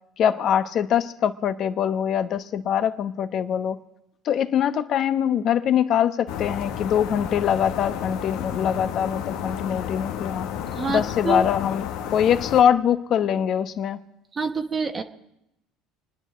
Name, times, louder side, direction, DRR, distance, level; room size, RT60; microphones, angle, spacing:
voice 1, 0.2-3.8 4.2-10.5 10.9-14.0, left 9 dB, 50° left, 11 dB, 0.9 m, -23 dB
sound 1, 6.3-12.6, left 9 dB, 75° left, 1.1 m, -32 dB
voice 2, 10.7-11.4 14.3-15.0, right 4 dB, 30° right, 5 dB, 1.1 m, -27 dB
27.0 x 10.0 x 4.9 m, 0.85 s
supercardioid pair, 85°, 0 cm